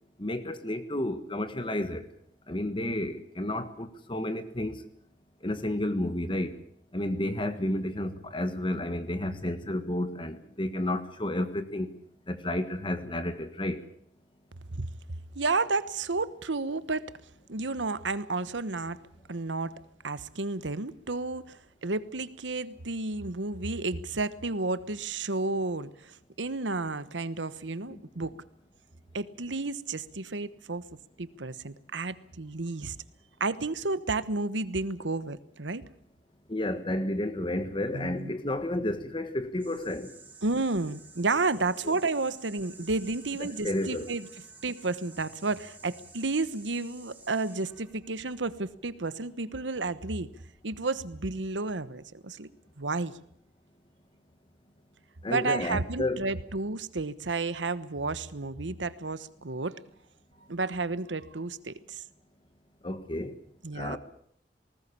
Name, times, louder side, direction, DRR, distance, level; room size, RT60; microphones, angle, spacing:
voice 1, 0.2-2.0 2.5-4.8 5.4-6.6 6.9-11.9 12.3-13.8 27.9-28.0 36.5-40.1 41.8-41.9 43.4-44.1 55.2-56.2 62.8-63.4 63.7-64.0, left 1 dB, 30° left, 1.4 m, -31 dB
voice 2, 15.3-17.0 17.5-19.0 19.3-19.7 20.0-28.3 29.1-30.8 31.2-33.0 33.4-35.8 37.9-38.3 40.4-44.3 44.6-50.3 50.6-52.5 52.8-53.1 55.3-59.8 60.5-62.0 63.6-64.0, right 3 dB, 90° right, 1.2 m, -31 dB
sound 1, 39.6-50.1 50.8-52.2, right 4 dB, 10° right, 3.5 m, -52 dB
19.5 x 19.5 x 8.6 m
head